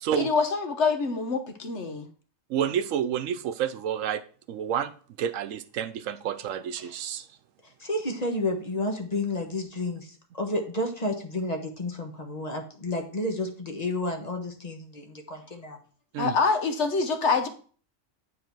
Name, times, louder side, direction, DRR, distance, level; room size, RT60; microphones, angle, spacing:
voice 1, 0.2-2.1 16.2-17.5, left 4 dB, 65° left, 7 dB, 1.2 m, -25 dB
voice 2, 2.5-4.2 4.5-4.9 5.2-7.3 9.9-10.0 16.1-16.4, right 9 dB, 85° right, 11 dB, 1.0 m, -29 dB
voice 3, 7.8-15.8, left 1 dB, 35° left, 3 dB, 1.3 m, -31 dB
9.6 x 4.0 x 4.5 m, 0.43 s
omnidirectional pair, 1.3 m